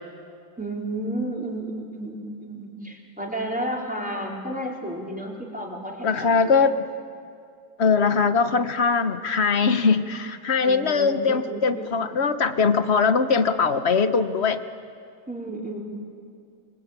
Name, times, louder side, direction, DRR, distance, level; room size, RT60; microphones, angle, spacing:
voice 1, 0.6-6.6 10.6-12.1 15.3-15.8, right 1 dB, 5° right, -2 dB, 4.1 m, -32 dB
voice 2, 6.0-6.8 7.8-14.6, left 5 dB, 45° left, 10 dB, 1.0 m, -21 dB
26.0 x 24.5 x 8.9 m, 2.3 s
omnidirectional pair, 2.0 m